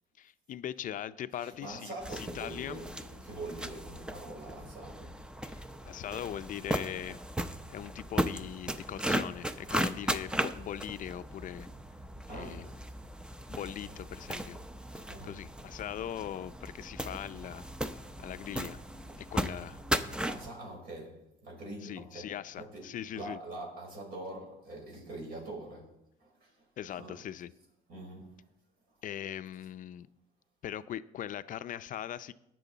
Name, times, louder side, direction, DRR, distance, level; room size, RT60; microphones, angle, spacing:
voice 1, 0.2-2.8 5.4-7.2 7.7-11.7 12.3-12.7 13.5-14.6 15.2-17.7 18.2-18.8 19.2-19.8 21.8-23.4 26.8-27.5 29.0-30.1 30.6-32.3, left 11 dB, 50° left, 0.5 m, -40 dB
voice 2, 1.3-5.2 12.3-12.8 13.9-14.0 15.1-15.4 20.2-26.6 26.9-27.2 27.9-28.4, right 2 dB, 65° right, 5.4 m, -44 dB
sound 1, 2.0-20.5, right 1 dB, 5° right, 0.6 m, -37 dB
18.5 x 6.3 x 4.0 m
cardioid pair, 110°, 17 cm